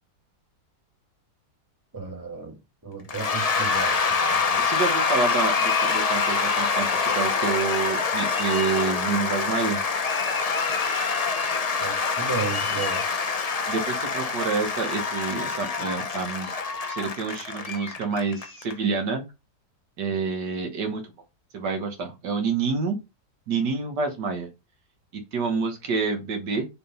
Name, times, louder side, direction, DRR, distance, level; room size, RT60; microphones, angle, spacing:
voice 1, 1.9-2.6 2.8-4.7 11.8-13.0, right 5 dB, 10° right, 2.1 m, -34 dB
Cheering / Applause / Crowd, 3.1-18.7, left 5 dB, 80° left, 0.3 m, -25 dB
voice 2, 4.6-9.8 13.7-16.5 16.9-19.2 20.0-21.1 21.5-23.0 23.5-24.5 25.3-26.7, right 5 dB, 75° right, 1.8 m, -28 dB
6.7 x 3.7 x 5.4 m
omnidirectional pair, 1.9 m